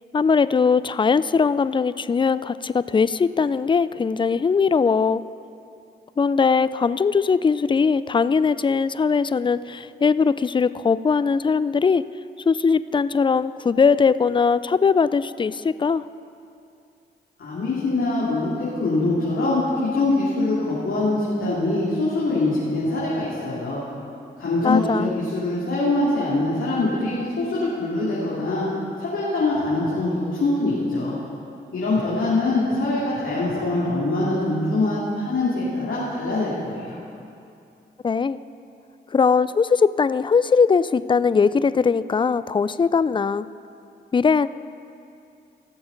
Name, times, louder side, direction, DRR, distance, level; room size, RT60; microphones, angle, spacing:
voice 1, 0.1-5.2 6.2-12.0 12.5-16.0 24.6-25.1 38.0-38.4 39.1-43.5 44.1-44.5, left 5 dB, 25° left, 16 dB, 0.3 m, -20 dB
voice 2, 17.4-18.5 18.8-23.8 24.4-28.7 29.0-31.2 31.7-37.0, left 2 dB, 70° left, -9 dB, 2.6 m, -23 dB
17.5 x 7.1 x 4.0 m, 2.5 s
supercardioid pair, 40°, 21 cm